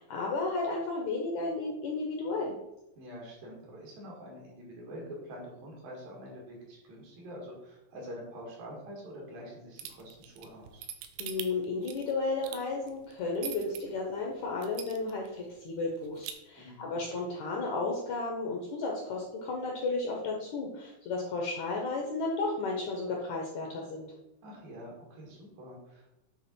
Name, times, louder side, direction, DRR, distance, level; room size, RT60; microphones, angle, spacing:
voice 1, 0.0-2.5 11.2-24.1, left 3 dB, 75° left, -1 dB, 1.8 m, -33 dB
voice 2, 3.0-10.9 16.6-16.9 24.4-26.2, equal, 70° right, -3 dB, 3.5 m, -46 dB
sound 1, 9.8-13.8 14.2-14.3 14.6-15.3 15.6-15.7 16.0-16.3, right 9 dB, 90° right, 2.6 m, -42 dB
8.6 x 3.5 x 4.3 m, 0.89 s
omnidirectional pair, 4.3 m